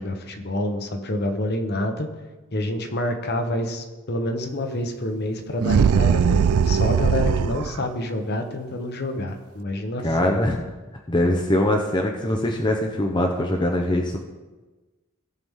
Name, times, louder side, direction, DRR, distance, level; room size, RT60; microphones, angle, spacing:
voice 1, 0.0-2.1 2.5-10.4, left 1 dB, 50° left, 5 dB, 1.0 m, -27 dB
sound 1, 5.6-7.8, right 7 dB, 85° right, 0.3 m, -20 dB
voice 2, 10.0-10.6 11.1-14.2, left 1 dB, 20° left, 2 dB, 0.7 m, -22 dB
17.0 x 5.9 x 3.7 m, 1.2 s
head